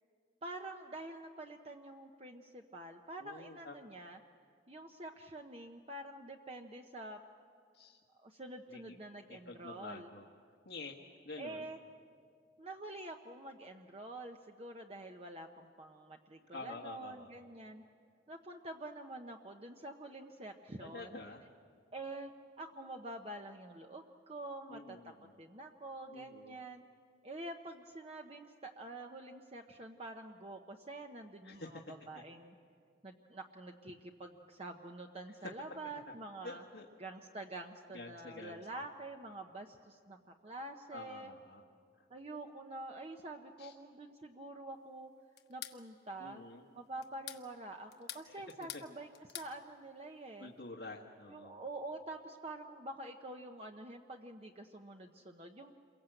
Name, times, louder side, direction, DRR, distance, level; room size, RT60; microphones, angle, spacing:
voice 1, 0.4-4.2 4.7-7.2 8.2-10.1 11.4-11.8 12.6-17.8 18.3-21.2 21.9-22.3 22.6-25.0 25.4-26.8 27.2-32.5 33.0-36.6 37.0-41.3 42.1-45.1 45.5-46.4 46.7-49.1 49.3-50.5 51.3-55.7, right 2 dB, 35° right, 3 dB, 0.9 m, -47 dB
voice 2, 3.2-3.7 7.7-8.0 8.7-8.9 9.3-10.3 10.6-11.0 11.2-11.7 16.5-17.4 20.8-21.4 24.7-25.3 26.1-26.6 31.4-31.8 35.4-35.5 36.4-36.9 37.9-38.6 40.9-41.6 43.6-43.7 46.2-46.7 48.2-48.4 50.4-51.6, left 2 dB, 85° left, -1 dB, 1.6 m, -48 dB
sound 1, 45.4-45.8 47.0-47.4 47.9-48.9 49.1-49.5, left 12 dB, 60° left, 1.2 m, -46 dB
28.5 x 23.0 x 7.8 m, 2.2 s
head